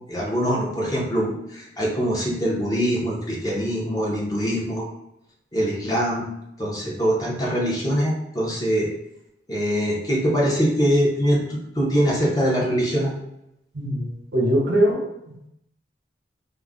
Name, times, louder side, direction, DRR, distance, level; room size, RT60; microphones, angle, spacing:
voice 1, 0.1-4.9 5.5-6.2 6.6-8.9 9.5-13.1, equal, 20° left, -4 dB, 0.6 m, -23 dB
voice 2, 13.7-15.3, equal, 80° right, -2 dB, 0.8 m, -22 dB
2.3 x 2.0 x 3.5 m, 0.82 s
head